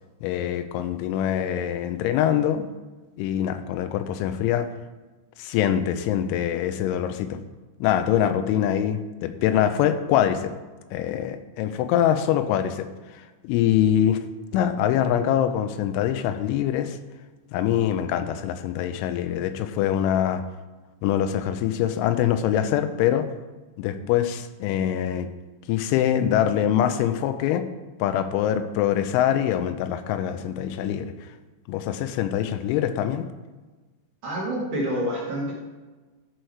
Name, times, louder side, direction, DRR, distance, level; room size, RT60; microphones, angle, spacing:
voice 1, 0.2-2.7 3.2-4.7 5.4-7.4 7.8-10.5 10.9-14.2 14.5-17.0 17.5-20.4 21.0-23.3 23.8-25.3 25.7-27.7 28.0-31.1 31.7-33.3, left 10 dB, 85° left, 10 dB, 3.0 m, -24 dB
voice 2, 34.2-35.5, equal, 60° right, -5 dB, 2.3 m, -28 dB
12.5 x 4.7 x 4.6 m, 1.2 s
omnidirectional pair, 5.4 m